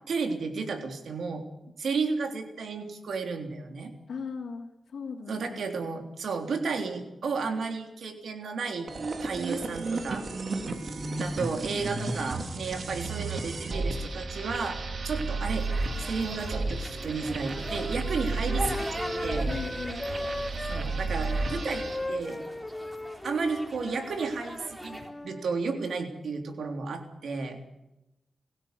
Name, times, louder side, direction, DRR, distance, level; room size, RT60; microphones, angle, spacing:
voice 1, 0.1-1.4 1.8-3.9 5.3-8.9 9.2-10.3 11.1-15.7 16.0-19.5 20.7-22.4 23.2-27.6, right 4 dB, 80° right, 5 dB, 3.5 m, -33 dB
voice 2, 4.1-5.7 19.4-20.1, left 5 dB, 85° left, -4 dB, 3.0 m, -38 dB
sound 1, 8.9-22.1, right 3 dB, 60° right, 3.0 m, -33 dB
sound 2, 15.4-25.1, equal, 15° right, 4.0 m, -42 dB
Wind instrument woodwind instrument, 17.0-20.9 21.2-25.5, left 1 dB, 15° left, 0.8 m, -38 dB
22.5 x 16.0 x 8.1 m, 0.92 s
cardioid pair, 80°, 0 cm